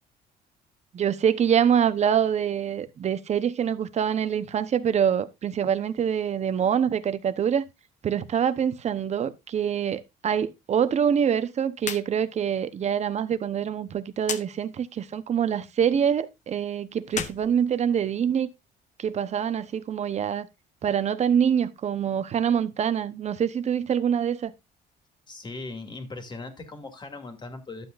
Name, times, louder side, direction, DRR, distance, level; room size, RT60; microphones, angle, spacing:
voice 1, 0.9-7.7 8.0-18.5 19.0-20.5 20.8-24.5, right 8 dB, 40° right, 0.9 m, -25 dB
sound 1, 11.8-12.1 12.4-12.5 14.2-14.5 17.0-18.3, left 7 dB, 45° left, 1.0 m, -34 dB
voice 2, 25.3-27.8, left 3 dB, 25° left, 2.2 m, -39 dB
11.5 x 7.9 x 2.5 m
cardioid pair, 110°, 17 cm